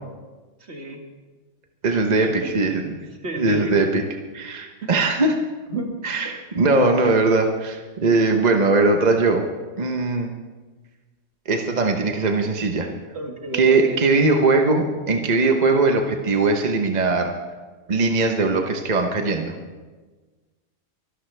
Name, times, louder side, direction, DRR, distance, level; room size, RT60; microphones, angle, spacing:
voice 1, 0.6-1.0 2.2-3.8 4.8-4.9 5.7-6.0 13.1-14.0, right 2 dB, 60° right, 2 dB, 2.1 m, -31 dB
voice 2, 1.8-2.9 3.4-4.0 4.3-5.4 6.0-9.4 9.8-10.3 11.5-12.9 13.5-17.3 17.9-19.5, right 3 dB, 35° right, 4 dB, 1.0 m, -20 dB
24.0 x 12.0 x 3.4 m, 1.3 s
omnidirectional pair, 1.3 m